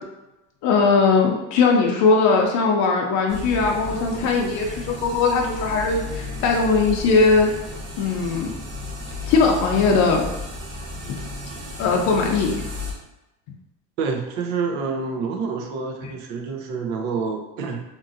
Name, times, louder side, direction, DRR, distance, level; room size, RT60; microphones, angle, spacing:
voice 1, 0.6-7.5 8.0-8.5 9.3-10.3 11.8-12.5, left 4 dB, 60° left, 1 dB, 0.5 m, -19 dB
sound 1, 3.3-12.9, left 2 dB, 60° right, 1.0 m, -34 dB
voice 2, 14.0-17.8, right 5 dB, 85° right, 3 dB, 0.6 m, -27 dB
2.9 x 2.6 x 2.5 m, 0.97 s
cardioid pair, 140°, 33 cm